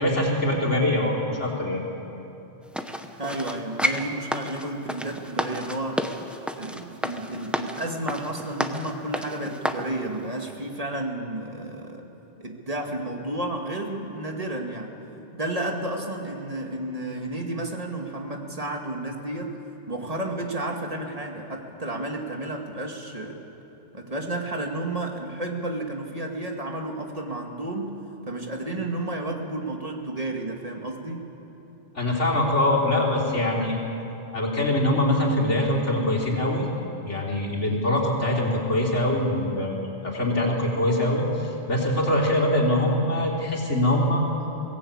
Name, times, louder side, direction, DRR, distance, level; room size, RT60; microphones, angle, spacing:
voice 1, 0.0-1.8 32.0-33.8 34.3-36.7 37.1-44.2, left 1 dB, 85° left, -3 dB, 3.8 m, -23 dB
sound 1, 2.7-9.9 10.4-10.5, equal, ahead, 0.8 m, -31 dB
voice 2, 3.2-6.1 6.6-12.1 12.4-15.0 15.3-19.6 19.9-23.4 23.9-31.3, right 1 dB, 30° right, 2 dB, 2.1 m, -32 dB
22.0 x 18.0 x 8.7 m, 3.0 s
omnidirectional pair, 1.2 m